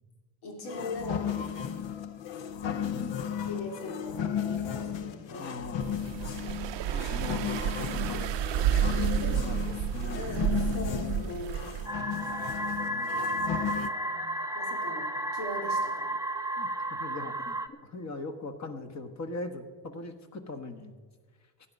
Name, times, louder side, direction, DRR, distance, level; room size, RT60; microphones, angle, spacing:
voice 1, 0.4-1.5 3.5-6.1 8.7-9.4 10.1-11.7 14.1-16.1, left 2 dB, 90° left, 0 dB, 3.2 m, -41 dB
sound 1, 0.6-13.9, left 8 dB, 65° left, 1.0 m, -34 dB
voice 2, 2.8-3.5 5.3-6.0 6.9-8.3 8.6-10.3 12.9-13.2 16.6-20.9, left 2 dB, 35° left, 7 dB, 1.6 m, -41 dB
sound 2, 5.8-11.9, right 10 dB, 60° right, 0.6 m, -30 dB
sound 3, 11.9-17.7, right 1 dB, 10° right, 0.6 m, -32 dB
16.0 x 10.5 x 5.4 m, 1.5 s
cardioid pair, 105°, 48 cm